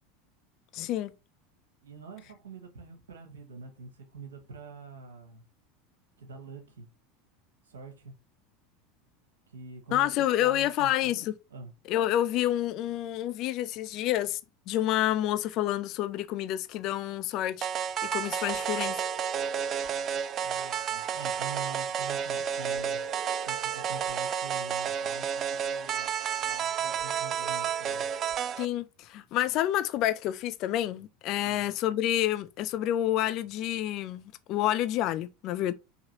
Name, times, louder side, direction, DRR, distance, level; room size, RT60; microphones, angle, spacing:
voice 1, 0.7-1.1 9.9-11.3 11.9-14.4 14.7-17.7 18.1-19.0 28.6-35.7, left 13 dB, 50° left, 0.3 m, -28 dB
voice 2, 1.8-5.4 6.2-6.9 7.6-8.1 9.5-10.1 10.4-11.2 11.5-11.7 20.4-23.0 23.4-28.1 31.4-31.7, right 4 dB, 80° right, 0.9 m, -45 dB
sound 1, 17.6-28.6, right 8 dB, 40° right, 0.3 m, -31 dB
sound 2, 18.5-19.9 22.7-24.2 27.0-28.4, right 4 dB, 60° right, 1.3 m, -46 dB
3.9 x 2.8 x 2.8 m
hypercardioid pair, 80°, 0 cm